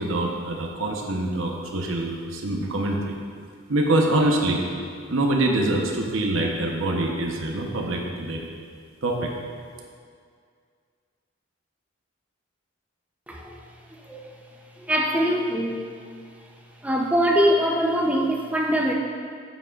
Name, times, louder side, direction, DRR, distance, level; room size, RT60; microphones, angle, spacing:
voice 1, 0.0-3.1 3.7-4.6 5.1-8.4 9.0-9.3, right 1 dB, 80° right, 0 dB, 1.0 m, -24 dB
voice 2, 14.8-15.8 16.8-18.9, equal, 5° right, -1 dB, 0.7 m, -22 dB
9.0 x 8.3 x 2.5 m, 2.1 s
head